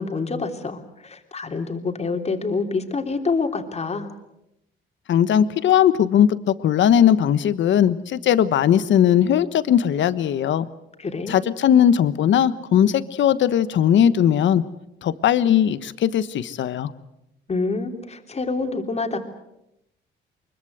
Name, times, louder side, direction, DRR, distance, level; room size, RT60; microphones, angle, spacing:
voice 1, 0.0-4.1 11.0-11.4 17.5-19.2, left 4 dB, 35° left, 4 dB, 3.3 m, -27 dB
voice 2, 5.1-10.7 11.3-14.6 15.0-16.9, left 9 dB, 70° left, 14 dB, 1.3 m, -18 dB
24.0 x 22.5 x 8.0 m, 0.86 s
cardioid pair, 90°, 20 cm